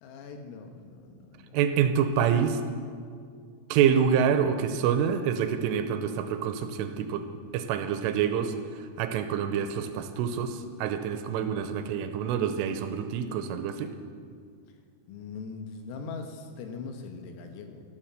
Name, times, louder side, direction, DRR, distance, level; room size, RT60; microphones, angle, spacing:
voice 1, 0.0-1.6 15.1-17.8, left 4 dB, 85° left, 5 dB, 4.0 m, -41 dB
voice 2, 1.5-2.6 3.7-7.2 7.5-8.5 9.0-13.9, right 8 dB, 85° right, 8 dB, 3.1 m, -26 dB
13.5 x 11.5 x 7.6 m, 2.1 s
omnidirectional pair, 5.9 m